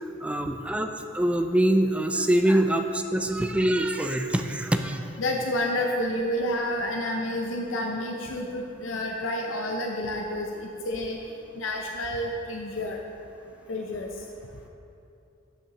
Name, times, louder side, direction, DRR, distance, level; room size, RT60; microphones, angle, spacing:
voice 1, 0.0-5.1, right 1 dB, 5° right, 6 dB, 0.3 m, -24 dB
voice 2, 5.2-11.2 11.6-13.0 13.7-14.1, left 1 dB, 80° left, 1 dB, 0.6 m, -29 dB
12.0 x 5.6 x 2.9 m, 2.7 s
head